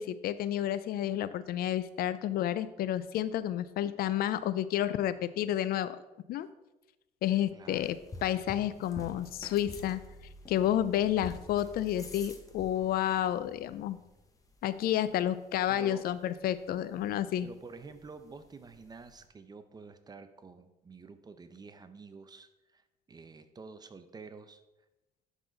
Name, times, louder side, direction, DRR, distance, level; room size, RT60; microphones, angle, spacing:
voice 1, 0.0-6.0 6.3-6.5 7.2-10.0 10.5-14.0 14.6-17.5, left 11 dB, 65° left, 15 dB, 0.4 m, -30 dB
voice 2, 7.5-7.9 15.7-16.1 17.4-24.6, right 4 dB, 25° right, 10 dB, 0.6 m, -49 dB
sound 1, 7.7-19.3, left 2 dB, 20° left, 1.0 m, -50 dB
11.0 x 4.1 x 3.9 m, 0.99 s
cardioid pair, 110°, 17 cm